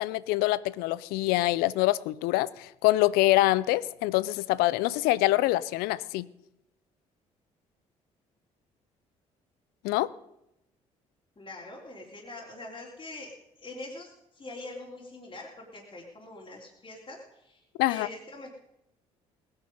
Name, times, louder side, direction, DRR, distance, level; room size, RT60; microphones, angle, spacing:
voice 1, 0.0-6.3 9.8-10.1 17.8-18.1, left 17 dB, 70° left, 0.5 m, -25 dB
voice 2, 11.4-13.3 13.6-17.6 17.9-18.5, left 2 dB, 35° left, 3.5 m, -43 dB
19.0 x 9.0 x 5.4 m
hypercardioid pair, 50°, 16 cm